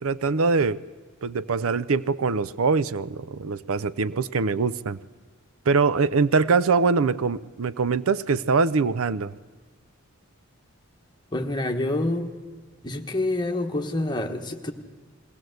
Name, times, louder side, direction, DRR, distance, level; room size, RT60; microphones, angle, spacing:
voice 1, 0.0-0.8 1.2-5.0 5.7-9.3, right 4 dB, 75° right, 17 dB, 0.5 m, -23 dB
voice 2, 11.3-12.3 12.8-14.7, left 2 dB, 20° left, 4 dB, 1.3 m, -27 dB
21.5 x 17.5 x 7.9 m, 1.4 s
head